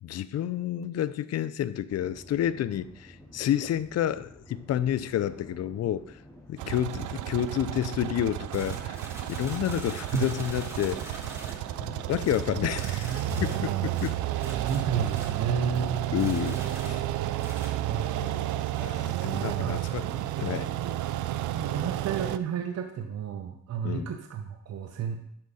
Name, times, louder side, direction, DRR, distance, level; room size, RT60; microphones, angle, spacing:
voice 1, 0.0-6.1 6.5-9.0 9.3-11.2 12.1-14.2 16.1-17.1 18.2-20.1 20.4-20.7 23.8-24.1, left 11 dB, 55° left, 0.5 m, -30 dB
sound 1, 1.9-18.1, left 1 dB, 10° left, 1.8 m, -50 dB
sound 2, 6.6-22.4, right 14 dB, 80° right, 0.5 m, -31 dB
sound 3, 8.5-11.8 12.2-15.8 16.1-17.7, right 1 dB, 10° right, 2.3 m, -45 dB
voice 2, 14.7-16.0 17.8-18.6 19.1-21.0 21.5-25.2, right 7 dB, 55° right, 0.9 m, -33 dB
11.5 x 4.6 x 4.2 m
cardioid pair, 90°, 30 cm